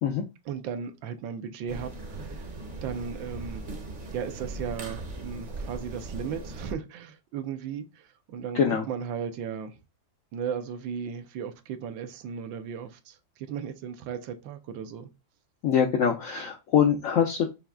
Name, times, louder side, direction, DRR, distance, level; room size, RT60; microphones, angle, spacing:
voice 1, 0.5-2.5 2.8-3.6 4.1-8.6 8.9-9.8 10.3-15.1, right 7 dB, 90° right, 1.4 m, -36 dB
sound 1, 1.7-6.7, right 2 dB, 40° right, 0.7 m, -38 dB
voice 2, 8.5-8.8 15.6-17.5, left 8 dB, 75° left, 0.7 m, -23 dB
5.6 x 2.3 x 3.6 m
omnidirectional pair, 2.0 m